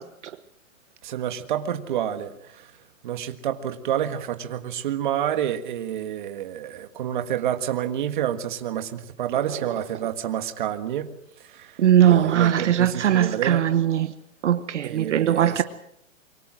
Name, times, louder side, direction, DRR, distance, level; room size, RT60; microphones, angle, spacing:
voice 1, 1.0-2.7 3.0-11.1 11.5-11.8 12.0-13.7 14.8-15.6, right 10 dB, 35° right, 1.7 m, -29 dB
voice 2, 11.8-14.1 14.4-15.6, right 10 dB, 60° right, 1.3 m, -20 dB
25.5 x 23.5 x 6.2 m
hypercardioid pair, 175°, 41 cm